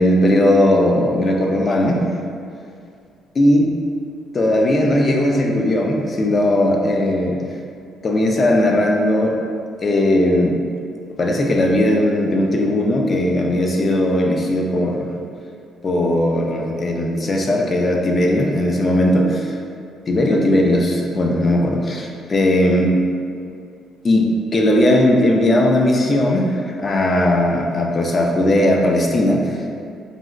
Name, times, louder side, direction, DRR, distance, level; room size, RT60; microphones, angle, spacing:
voice 1, 0.0-2.0 3.4-3.7 4.3-7.4 8.0-9.4 9.8-10.6 11.2-15.1 15.8-19.5 20.1-22.9 24.0-29.6, left 1 dB, 35° left, 1 dB, 0.3 m, -17 dB
3.8 x 2.1 x 2.3 m, 2.3 s
cardioid pair, 120°, 0 cm